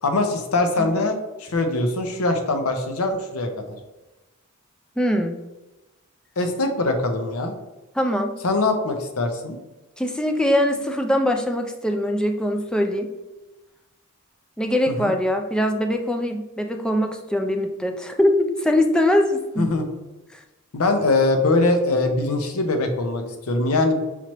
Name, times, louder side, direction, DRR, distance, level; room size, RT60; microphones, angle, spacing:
voice 1, 0.0-3.8 6.4-7.5 8.4-9.6 14.9-15.1 19.6-19.9 20.7-24.0, left 2 dB, 75° left, 5 dB, 0.6 m, -22 dB
voice 2, 5.0-5.4 8.0-8.4 10.0-13.1 14.6-19.7 20.3-20.4, left 1 dB, 5° left, 3 dB, 0.4 m, -22 dB
5.8 x 2.9 x 3.0 m, 1.1 s
head